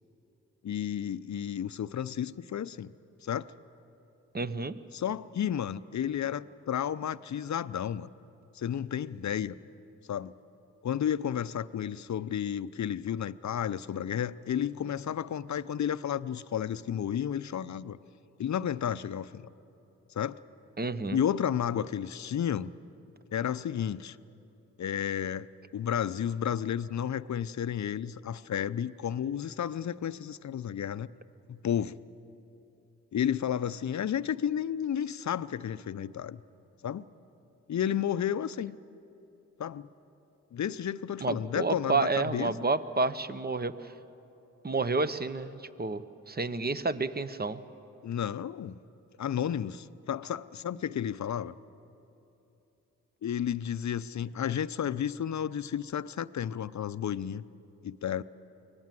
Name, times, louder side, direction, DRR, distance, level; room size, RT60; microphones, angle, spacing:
voice 1, 0.6-2.9 3.2-3.5 4.9-8.1 8.5-9.6 10.1-10.3 10.8-18.0 18.4-19.4 20.2-20.4 21.1-22.7 23.3-24.2 24.8-25.5 25.7-31.1 31.5-32.0 33.1-36.4 36.8-37.0 37.7-38.8 39.6-39.9 40.5-42.5 48.0-48.8 49.2-51.5 53.2-57.4 57.8-58.2, left 9 dB, 50° left, 15 dB, 0.7 m, -32 dB
voice 2, 4.3-4.7 20.8-21.2 41.2-43.7 44.6-47.6, right 3 dB, 25° right, 13 dB, 1.0 m, -30 dB
24.0 x 18.0 x 7.7 m, 3.0 s
supercardioid pair, 40°, 36 cm